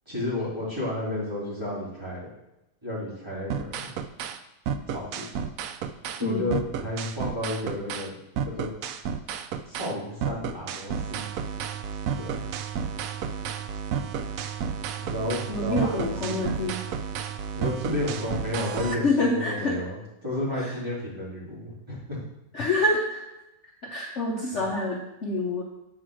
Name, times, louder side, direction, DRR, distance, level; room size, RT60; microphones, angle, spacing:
voice 1, 0.1-2.3 2.8-3.9 4.9-5.5 6.2-8.2 8.4-8.7 9.7-11.2 12.2-12.4 15.0-16.5 17.5-22.2, left 1 dB, 15° right, -8 dB, 3.3 m, -32 dB
sound 1, 3.5-4.4 4.7-6.2 6.5-8.1 8.4-9.9 10.2-19.0, right 7 dB, 70° right, 0.9 m, -32 dB
voice 2, 15.5-16.8 19.0-19.8 22.5-23.2 23.9-25.6, left 2 dB, 50° left, -1 dB, 1.2 m, -26 dB
7.7 x 4.9 x 6.2 m, 0.92 s
omnidirectional pair, 1.7 m